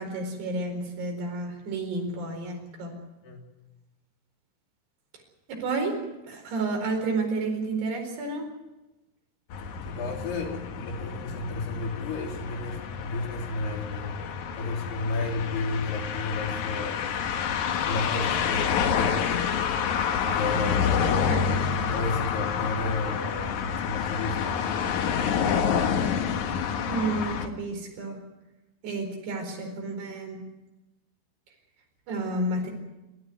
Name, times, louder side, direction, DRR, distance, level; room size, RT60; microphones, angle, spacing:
voice 1, 0.0-3.0 5.5-8.5 21.3-21.4 26.9-28.2 28.8-30.4 32.1-32.7, right 3 dB, 80° right, 3 dB, 6.5 m, -31 dB
sound 1, 9.5-27.5, left 7 dB, 60° left, 2.3 m, -28 dB
voice 2, 9.8-14.2 14.5-17.0 17.8-19.3 20.2-21.5 21.9-24.6, left 3 dB, 75° left, 1 dB, 5.5 m, -32 dB
26.0 x 14.0 x 9.5 m, 1.0 s
omnidirectional pair, 4.7 m